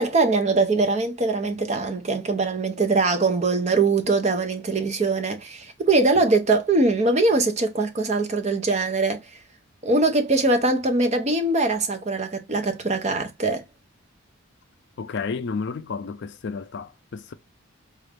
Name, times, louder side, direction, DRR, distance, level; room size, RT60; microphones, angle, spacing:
voice 1, 0.0-9.2 9.8-13.6, right 3 dB, 30° right, 0.6 m, -22 dB
voice 2, 15.0-17.3, left 5 dB, 55° left, 0.4 m, -31 dB
4.0 x 2.4 x 3.3 m
head